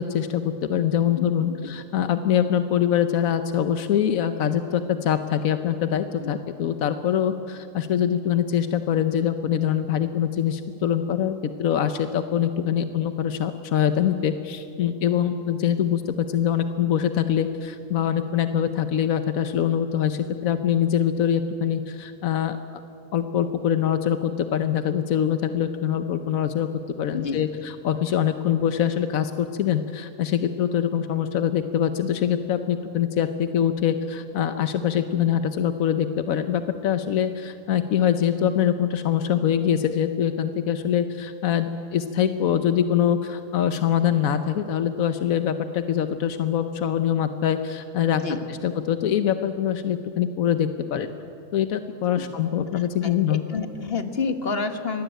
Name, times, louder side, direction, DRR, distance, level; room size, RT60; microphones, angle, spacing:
voice 1, 0.0-22.6 23.1-26.7 27.0-48.2 48.6-51.1 51.5-53.4, left 9 dB, 90° left, 9 dB, 1.3 m, -24 dB
voice 2, 1.2-1.7 6.2-6.4 27.1-27.4 48.1-48.4 52.1-52.3 52.7-55.0, left 4 dB, 45° left, 8 dB, 1.6 m, -30 dB
24.0 x 19.0 x 9.1 m, 2.7 s
omnidirectional pair, 1.4 m